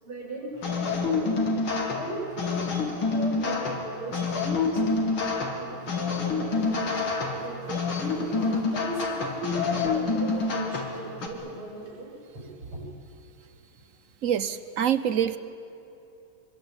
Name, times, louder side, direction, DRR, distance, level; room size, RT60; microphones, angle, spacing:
voice 1, 0.0-1.4 1.9-2.6 3.1-4.8 5.5-7.9 8.3-12.9, right 1 dB, 90° right, -3 dB, 8.2 m, -38 dB
sound 1, 0.6-11.3, left 3 dB, 70° left, 3.5 m, -27 dB
voice 2, 14.2-15.4, right 9 dB, 55° right, 13 dB, 0.9 m, -25 dB
26.0 x 24.0 x 9.0 m, 2.8 s
omnidirectional pair, 2.3 m